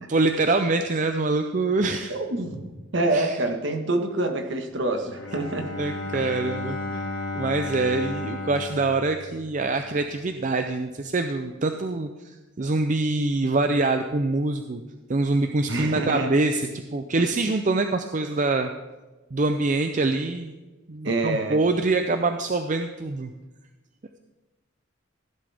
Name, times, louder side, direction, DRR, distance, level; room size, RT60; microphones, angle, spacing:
voice 1, 0.1-2.1 3.1-3.4 5.8-14.8 15.1-18.7 19.3-20.5 20.9-23.3, right 3 dB, 40° right, 7 dB, 0.6 m, -25 dB
voice 2, 2.1-2.7 2.9-5.7 6.1-6.3 15.7-16.3 21.0-21.6, right 2 dB, 60° right, 4 dB, 1.6 m, -26 dB
Bowed string instrument, 5.0-9.9, left 2 dB, 65° left, 1.8 m, -34 dB
16.0 x 11.0 x 3.5 m, 1.2 s
head